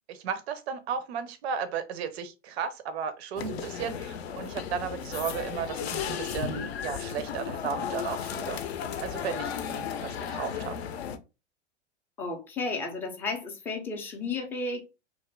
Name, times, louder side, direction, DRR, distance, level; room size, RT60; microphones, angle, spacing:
voice 1, 0.1-8.6 9.0-10.8, right 7 dB, 60° right, 0.5 m, -34 dB
sound 1, 3.4-11.2, left 8 dB, 60° left, 0.5 m, -34 dB
voice 2, 12.2-14.8, left 3 dB, 5° left, 0.3 m, -33 dB
2.5 x 2.5 x 3.1 m
figure-of-eight pair, 95°, 37 cm